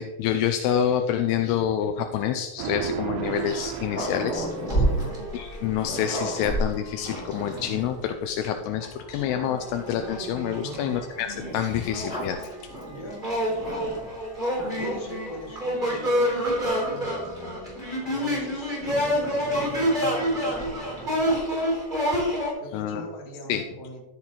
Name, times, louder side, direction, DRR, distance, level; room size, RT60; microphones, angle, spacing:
voice 1, 0.0-4.8 5.3-11.3 11.5-12.4 22.7-23.0 23.5-23.6, left 9 dB, 85° left, 6 dB, 2.4 m, -27 dB
sound 1, 2.6-5.0, right 10 dB, 85° right, 2.3 m, -34 dB
Growling, 3.5-8.0 8.7-8.8 9.2-10.3 11.3-14.2 14.5-15.0 15.9-17.7 18.8-21.4, right 1 dB, 30° left, 2.3 m, -33 dB
sound 2, 3.9-7.9 8.4-8.5 8.8-22.5, equal, 15° right, 2.7 m, -29 dB
voice 2, 4.8-5.1 10.6-11.1 12.9-13.9 14.8-21.3 22.5-24.1, left 1 dB, 45° left, -3 dB, 3.1 m, -41 dB
13.5 x 7.3 x 3.0 m, 1.0 s
omnidirectional pair, 5.1 m